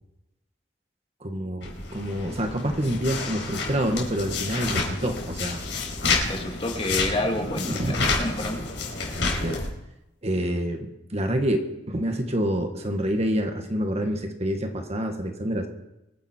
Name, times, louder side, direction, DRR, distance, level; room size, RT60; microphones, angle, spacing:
voice 1, 1.2-5.6 7.5-8.1 9.4-9.6 10.2-15.7, equal, 35° right, 4 dB, 1.7 m, -27 dB
sound 1, 1.6-9.7, left 3 dB, 85° left, 4.5 m, -29 dB
voice 2, 6.2-8.6, left 1 dB, 30° left, 2 dB, 2.2 m, -29 dB
24.0 x 10.5 x 4.5 m, 0.90 s
head